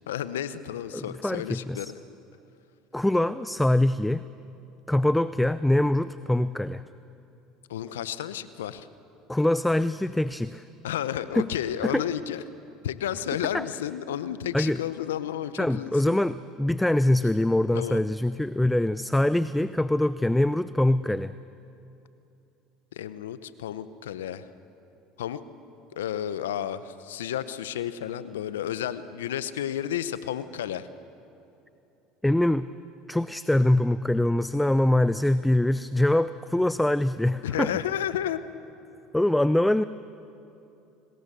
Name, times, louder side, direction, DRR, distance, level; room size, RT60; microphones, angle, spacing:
voice 1, 0.1-2.0 7.7-8.9 10.8-12.4 12.8-16.2 17.7-18.0 22.9-24.5 25.2-25.4 25.9-30.9 37.4-38.4, left 10 dB, 85° left, 14 dB, 0.8 m, -32 dB
voice 2, 0.9-1.9 2.9-4.2 4.9-6.8 9.3-10.6 11.3-11.5 11.8-12.0 13.5-13.7 14.5-14.8 15.6-21.3 32.2-32.7 33.1-37.7 39.1-39.8, left 1 dB, 5° left, 15 dB, 0.5 m, -23 dB
25.5 x 20.0 x 6.8 m, 2.9 s
hypercardioid pair, 80°, 0 cm